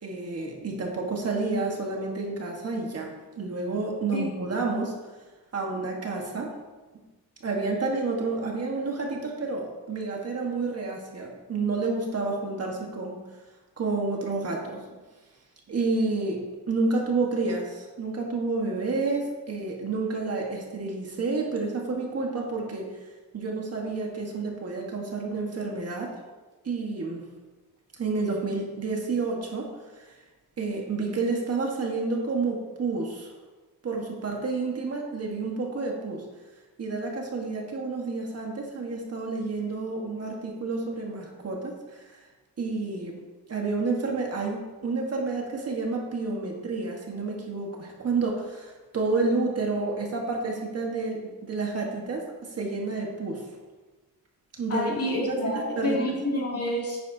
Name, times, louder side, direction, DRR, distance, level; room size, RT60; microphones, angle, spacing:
voice 1, 0.0-5.0 5.5-6.5 7.4-13.2 13.8-14.8 15.7-22.9 23.3-26.1 26.6-27.2 28.0-29.7 30.6-33.3 33.8-36.2 36.8-42.0 42.6-43.2 43.5-53.4 54.6-54.9 55.3-56.0, right 3 dB, 40° right, 0 dB, 1.4 m, -30 dB
voice 2, 54.7-57.0, left 1 dB, 40° left, -4 dB, 2.6 m, -28 dB
10.5 x 9.2 x 2.7 m, 1.2 s
wide cardioid pair, 165°, 38 cm